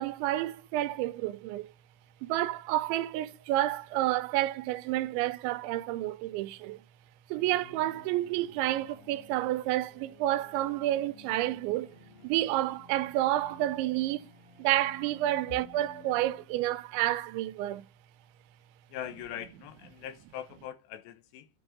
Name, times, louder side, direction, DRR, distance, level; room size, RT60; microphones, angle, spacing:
voice 1, 0.0-1.7 2.2-6.8 7.3-11.9 12.2-14.3 14.6-17.8, right 15 dB, 85° right, 3.1 m, -30 dB
sound 1, 7.3-16.5, left 5 dB, 55° left, 3.8 m, -55 dB
voice 2, 18.9-21.5, left 10 dB, 75° left, 2.9 m, -41 dB
10.5 x 7.1 x 5.0 m
omnidirectional pair, 5.2 m